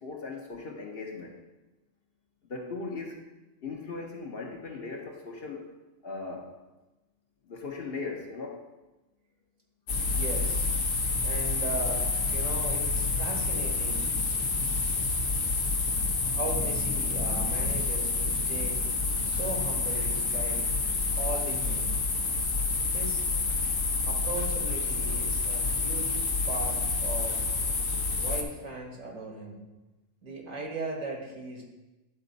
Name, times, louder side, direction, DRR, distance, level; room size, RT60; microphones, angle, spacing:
voice 1, 0.0-1.4 2.5-3.2 3.6-5.7 6.0-6.5 7.5-8.6, left 4 dB, 50° left, 1 dB, 1.0 m, -38 dB
sound 1, 9.9-28.4, left 3 dB, 75° left, 1.3 m, -28 dB
voice 2, 10.0-10.7 11.2-14.0 16.2-18.8 19.2-20.7 21.2-22.0 22.9-23.2 24.0-26.1 26.4-27.4 28.2-29.7 30.2-31.6, right 2 dB, 75° right, 0 dB, 2.0 m, -38 dB
11.0 x 4.3 x 4.0 m, 1.1 s
omnidirectional pair, 1.4 m